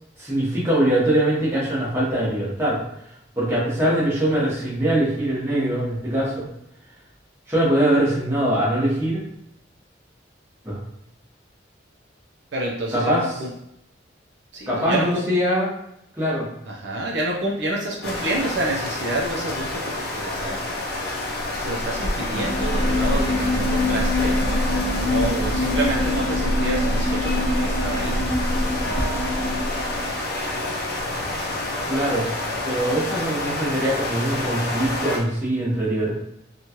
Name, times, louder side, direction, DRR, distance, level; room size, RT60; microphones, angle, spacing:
voice 1, 0.2-2.8 3.4-6.5 7.5-9.2 10.6-10.8 12.9-13.4 14.7-15.7 16.2-16.5 31.9-32.3 32.6-36.1, right 1 dB, 15° right, -8 dB, 1.0 m, -22 dB
voice 2, 12.5-13.5 14.5-15.2 16.7-20.6 21.6-24.4 25.0-28.2, right 1 dB, 65° right, -2 dB, 0.5 m, -28 dB
sound 1, 18.0-35.2, left 1 dB, 55° left, 0.6 m, -28 dB
sound 2, 22.3-30.1, left 1 dB, 20° left, 0.8 m, -24 dB
2.9 x 2.4 x 2.8 m, 0.78 s
head